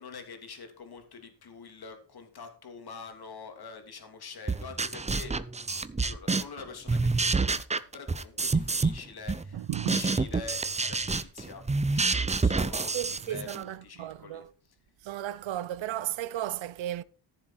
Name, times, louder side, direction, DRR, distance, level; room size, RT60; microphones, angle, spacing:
voice 1, 0.0-5.4 6.0-7.6 7.9-11.7 11.9-14.4, left 5 dB, 55° left, 2.8 m, -45 dB
sound 1, 4.5-6.6 6.9-9.0 9.3-13.6, right 3 dB, 15° right, 0.5 m, -28 dB
voice 2, 9.5-10.0 12.9-14.5 15.0-17.0, right 13 dB, 75° right, 0.7 m, -34 dB
14.5 x 7.3 x 4.6 m
wide cardioid pair, 150°, 46 cm